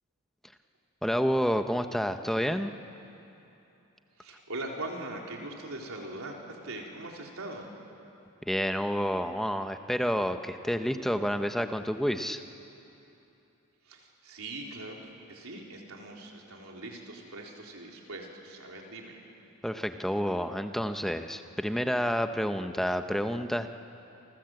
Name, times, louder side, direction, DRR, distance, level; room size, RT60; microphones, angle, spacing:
voice 1, 1.0-2.7 8.5-12.4 19.6-23.7, equal, ahead, 7 dB, 0.8 m, -29 dB
voice 2, 4.2-7.7 13.8-19.2, right 2 dB, 75° right, 0 dB, 3.8 m, -41 dB
29.0 x 24.0 x 7.9 m, 2.9 s
head